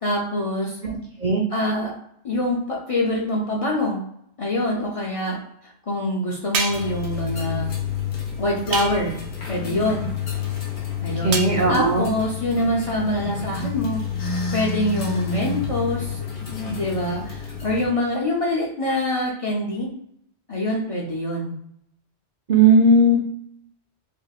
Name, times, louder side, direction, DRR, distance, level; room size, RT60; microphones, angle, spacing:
voice 1, 0.0-0.8 1.5-1.9 2.2-4.0 4.4-5.4 5.9-7.7 8.4-9.2 9.5-10.1 11.0-11.4 11.7-16.2 16.7-19.9 20.5-21.5, left 1 dB, 40° left, -3 dB, 0.5 m, -25 dB
voice 2, 0.8-1.4 11.2-12.1 22.5-23.2, right 2 dB, 55° right, -1 dB, 0.5 m, -17 dB
sound 1, 6.5-7.0 8.7-9.2 11.3-11.6, right 4 dB, 70° right, 0.9 m, -27 dB
sound 2, 6.7-17.9, left 6 dB, 70° left, 1.1 m, -29 dB
3.3 x 3.3 x 2.4 m, 0.71 s
omnidirectional pair, 1.2 m